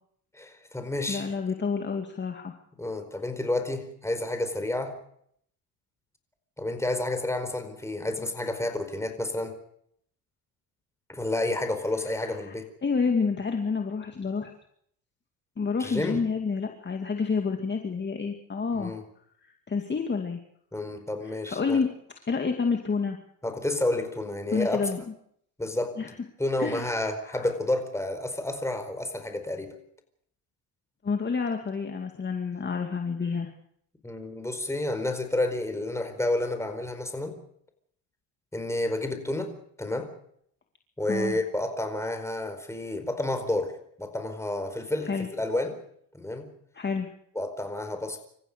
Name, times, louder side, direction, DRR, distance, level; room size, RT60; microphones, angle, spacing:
voice 1, 0.3-1.3 2.8-5.0 6.6-9.6 11.1-12.7 15.8-16.2 18.7-19.0 20.7-21.8 23.4-25.0 25.6-25.9 26.4-29.7 34.0-37.4 38.5-39.5 39.8-40.1 41.0-43.7 44.0-45.8 46.1-46.5 47.3-48.2, left 1 dB, 5° left, 7 dB, 4.5 m, -30 dB
voice 2, 1.1-2.5 12.2-12.5 12.8-14.5 15.6-18.9 19.7-20.4 21.2-21.9 22.3-23.2 24.5-25.0 26.0-26.1 26.6-26.9 27.3-27.4 31.0-33.5 41.1-41.4 45.0-45.3 46.7-47.1, left 5 dB, 25° left, 4 dB, 2.4 m, -29 dB
27.0 x 15.0 x 6.8 m, 0.68 s
cardioid pair, 105°, 44 cm